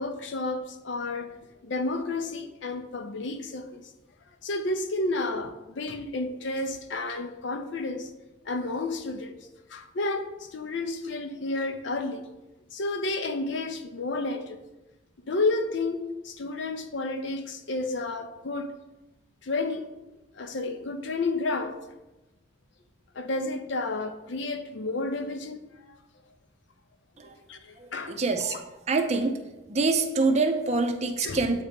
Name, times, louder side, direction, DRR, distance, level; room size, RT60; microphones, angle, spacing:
voice 1, 0.0-1.3 1.6-3.9 4.4-8.1 8.5-9.4 9.7-12.3 12.7-14.6 15.3-18.7 19.4-19.9 20.4-21.8 23.1-26.0 27.5-28.2 28.5-28.6 31.2-31.4, left 2 dB, 60° left, 7 dB, 0.6 m, -31 dB
voice 2, 27.8-28.6 28.9-29.4 29.7-31.6, right 3 dB, 35° right, 6 dB, 0.5 m, -25 dB
8.0 x 2.9 x 5.1 m, 1.0 s
head